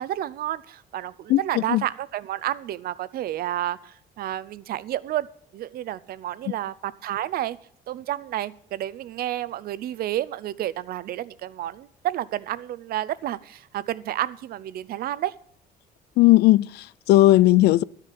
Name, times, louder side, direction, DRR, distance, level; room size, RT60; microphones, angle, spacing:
voice 1, 0.0-5.3 5.5-7.6 7.9-15.3, right 13 dB, 65° right, 0.6 m, -30 dB
voice 2, 16.2-17.8, left 16 dB, 75° left, 0.4 m, -16 dB
12.5 x 6.6 x 7.6 m
cardioid pair, 110°, 17 cm